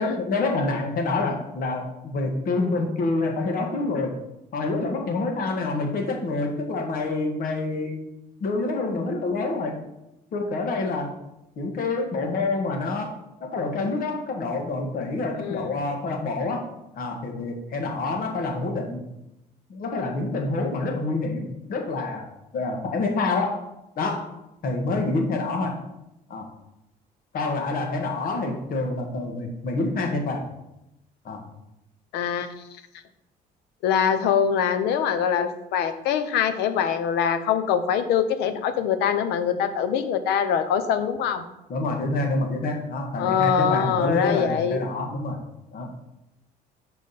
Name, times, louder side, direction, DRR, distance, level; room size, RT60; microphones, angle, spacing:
voice 1, 0.0-4.2 4.5-8.0 8.4-9.8 10.3-11.1 11.6-13.1 13.4-16.6 16.9-19.0 19.7-22.3 22.5-23.5 24.0-24.3 24.6-25.8 26.3-26.5 27.3-30.5 31.2-31.4 41.7-45.4 45.7-45.9, left 3 dB, 60° left, 2 dB, 1.6 m, -27 dB
voice 2, 32.1-32.5 33.8-41.4 43.2-44.8, left 8 dB, 90° left, 10 dB, 0.7 m, -23 dB
6.6 x 4.9 x 4.1 m, 0.89 s
cardioid pair, 110°, 17 cm